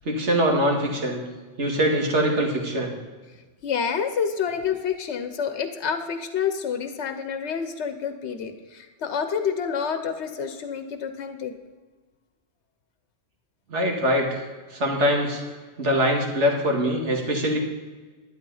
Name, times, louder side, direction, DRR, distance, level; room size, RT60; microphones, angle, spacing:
voice 1, 0.1-1.2 1.6-2.9 13.7-14.5 14.7-15.4 15.8-17.6, equal, 75° right, 1 dB, 2.2 m, -23 dB
voice 2, 3.6-11.5, left 7 dB, 70° left, 7 dB, 1.2 m, -28 dB
12.0 x 10.5 x 4.0 m, 1.3 s
omnidirectional pair, 1.2 m